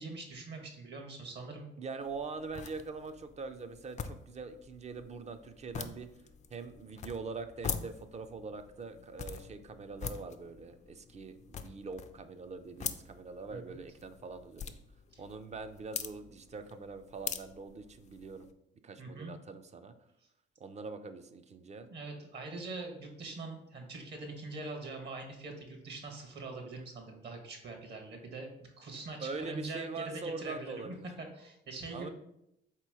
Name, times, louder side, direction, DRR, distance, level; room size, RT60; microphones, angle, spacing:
voice 1, 0.0-1.7 13.5-13.8 15.1-15.2 19.0-19.3 21.9-28.5 28.8-32.1, right 3 dB, 60° right, 4 dB, 1.1 m, -43 dB
voice 2, 1.8-6.1 6.5-14.8 15.2-18.5 18.8-19.9 20.6-21.9 29.2-31.1 31.9-32.1, right 4 dB, 35° right, 9 dB, 0.4 m, -43 dB
sound 1, 2.0-18.5, left 6 dB, 35° left, 0.4 m, -45 dB
3.8 x 2.9 x 4.7 m, 0.81 s
cardioid pair, 90°, 20 cm